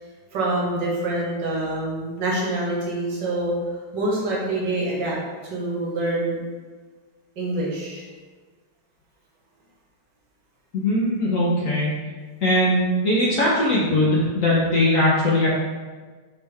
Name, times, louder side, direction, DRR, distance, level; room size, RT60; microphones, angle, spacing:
voice 1, 0.3-3.5 3.9-5.2 5.5-6.4 7.4-8.0, right 2 dB, 70° right, -4 dB, 1.7 m, -25 dB
voice 2, 10.7-11.9 12.4-15.5, left 1 dB, 60° left, -6 dB, 0.9 m, -20 dB
4.4 x 3.3 x 3.3 m, 1.4 s
omnidirectional pair, 2.0 m